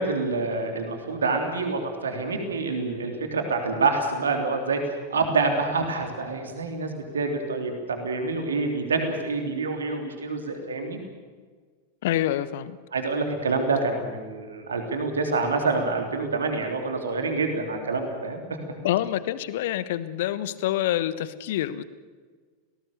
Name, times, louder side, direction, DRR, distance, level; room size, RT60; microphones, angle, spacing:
voice 1, 0.0-11.0 12.9-18.6, right 3 dB, 70° right, 4 dB, 3.2 m, -27 dB
voice 2, 12.0-12.8 18.8-21.8, left 13 dB, 55° left, 15 dB, 1.1 m, -27 dB
29.0 x 18.5 x 6.9 m, 1.6 s
figure-of-eight pair, 90°, 0 cm